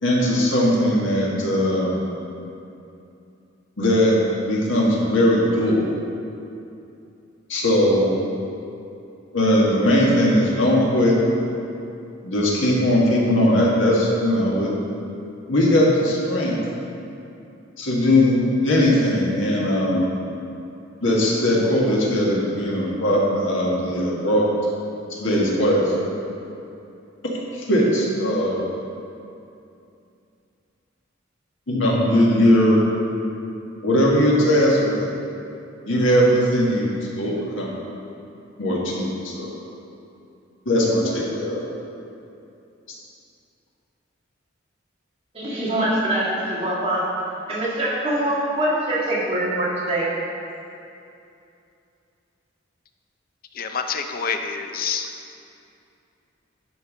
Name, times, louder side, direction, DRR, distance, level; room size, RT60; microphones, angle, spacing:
voice 1, 0.0-2.0 3.8-4.2 4.4-5.9 7.5-8.1 9.3-11.2 12.2-14.7 15.5-16.6 17.8-20.1 21.0-24.5 25.1-25.9 27.7-28.7 31.7-32.8 33.8-35.1 35.9-37.8 38.6-39.5 40.7-41.6, left 1 dB, 85° left, -4 dB, 1.7 m, -19 dB
voice 2, 45.3-47.1 47.5-50.1, right 1 dB, 30° right, -7 dB, 2.1 m, -23 dB
voice 3, 53.5-55.1, left 6 dB, 50° left, 6 dB, 0.5 m, -27 dB
10.5 x 4.7 x 5.2 m, 2.7 s
head